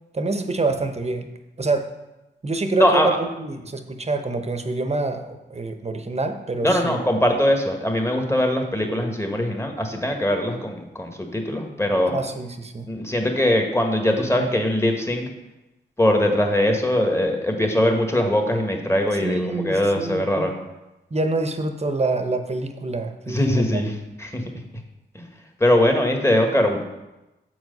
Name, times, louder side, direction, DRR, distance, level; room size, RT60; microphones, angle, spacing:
voice 1, 0.1-1.3 1.6-1.9 2.4-7.0 12.1-12.9 19.2-20.5 21.1-23.8, right 3 dB, 35° right, 7 dB, 0.9 m, -26 dB
voice 2, 2.8-3.1 6.6-12.2 12.8-15.3 16.0-20.5 23.3-24.4 25.6-26.8, left 1 dB, 15° left, 3 dB, 1.6 m, -21 dB
7.3 x 4.7 x 5.3 m, 1.0 s
cardioid pair, 45°, 20 cm